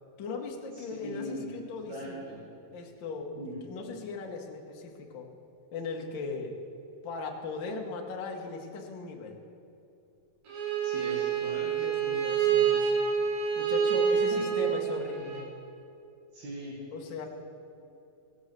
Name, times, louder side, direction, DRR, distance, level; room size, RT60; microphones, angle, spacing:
voice 1, 0.2-2.2 2.7-5.3 5.7-6.5 7.0-9.4 11.6-13.0 13.5-15.5 16.9-17.2, left 4 dB, 60° left, 1 dB, 1.2 m, -38 dB
voice 2, 1.0-1.5 1.9-2.4 3.4-3.5 10.8-11.7 14.3-14.4 16.3-16.8, right 1 dB, 60° right, -5 dB, 2.9 m, -40 dB
Bowed string instrument, 10.5-15.4, right 7 dB, 75° right, 4.4 m, -27 dB
16.5 x 7.1 x 6.6 m, 2.8 s
omnidirectional pair, 4.0 m